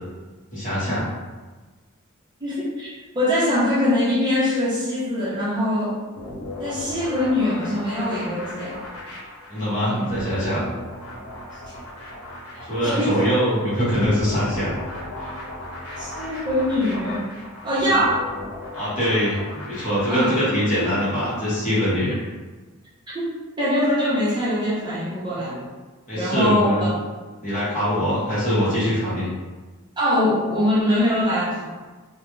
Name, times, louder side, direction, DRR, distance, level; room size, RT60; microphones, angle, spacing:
voice 1, 0.5-1.1 9.5-10.7 12.6-14.7 15.2-15.3 18.7-22.1 26.1-26.9 27.4-29.3, equal, 35° left, -10 dB, 1.0 m, -23 dB
voice 2, 2.4-2.9 3.1-6.0 6.6-8.8 9.8-10.1 12.5-13.2 16.0-17.3 17.6-18.2 20.1-20.3 23.1-23.3 23.6-25.6 26.1-26.9 30.0-31.6, left 1 dB, 20° right, -9 dB, 0.6 m, -22 dB
sound 1, 6.2-21.6, left 1 dB, 85° left, 0.8 m, -36 dB
2.3 x 2.1 x 3.0 m, 1.3 s
head